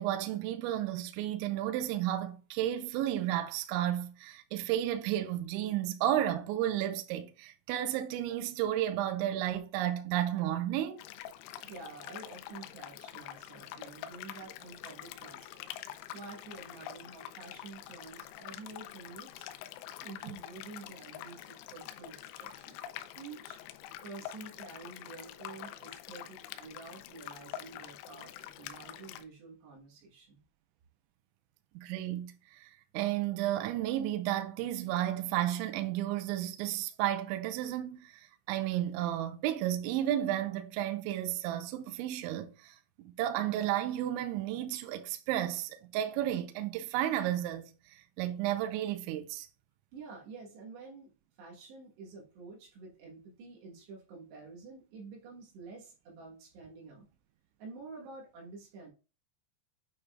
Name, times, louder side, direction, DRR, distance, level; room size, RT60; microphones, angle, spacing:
voice 1, 0.0-11.0 31.8-49.5, right 12 dB, 85° right, 2.7 m, -33 dB
sound 1, 11.0-29.2, left 12 dB, 85° left, 3.1 m, -46 dB
voice 2, 11.6-15.7 16.1-19.5 20.0-22.8 23.2-23.6 24.0-30.4 49.9-51.1 51.4-57.1 57.6-58.9, right 4 dB, 65° right, 3.1 m, -49 dB
9.0 x 4.7 x 2.4 m
omnidirectional pair, 6.0 m